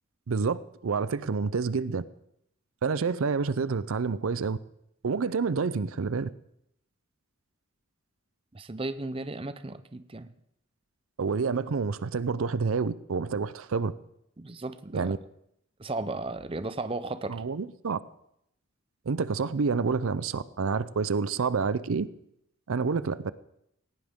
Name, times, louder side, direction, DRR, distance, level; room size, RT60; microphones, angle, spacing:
voice 1, 0.3-2.0 2.8-4.6 5.0-6.3 11.2-13.9 14.9-15.2 17.3-18.0 19.1-22.1 22.7-23.3, right 5 dB, 75° right, 17 dB, 0.5 m, -28 dB
voice 2, 8.5-10.3 14.4-15.2 15.8-17.4, right 2 dB, 25° right, 12 dB, 0.6 m, -35 dB
18.5 x 18.0 x 3.7 m, 0.77 s
head